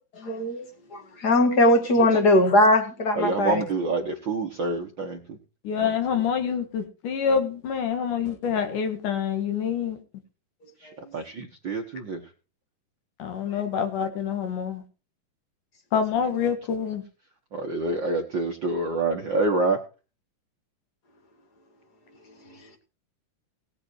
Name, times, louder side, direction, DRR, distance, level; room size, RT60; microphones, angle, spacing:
voice 1, 0.1-3.6 11.0-11.1 22.5-22.6, left 1 dB, 35° left, 2.0 m, -21 dB
voice 2, 3.2-5.4 11.1-12.2 17.5-19.8, right 3 dB, 50° right, 1.4 m, -27 dB
voice 3, 5.6-10.0 13.2-14.8 15.9-17.0, left 7 dB, 70° left, 3.2 m, -26 dB
18.0 x 8.2 x 4.7 m
omnidirectional pair, 3.9 m